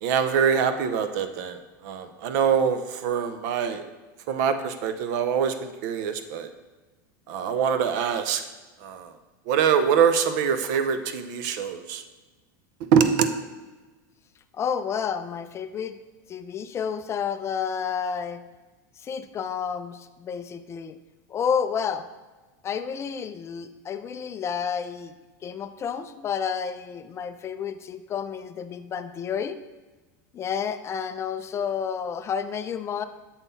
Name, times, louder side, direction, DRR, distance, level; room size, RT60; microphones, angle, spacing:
voice 1, 0.0-1.6 1.8-3.8 4.3-6.5 7.3-8.4 8.8-9.1 9.5-12.0 12.9-13.3, right 7 dB, 65° right, 9 dB, 0.6 m, -24 dB
voice 2, 14.5-16.0 16.3-18.4 19.0-21.0 21.3-22.1 22.6-25.1 25.4-29.6 30.3-33.0, left 7 dB, 25° left, 10 dB, 0.3 m, -30 dB
7.1 x 3.7 x 4.1 m, 1.2 s
supercardioid pair, 115°, 10 cm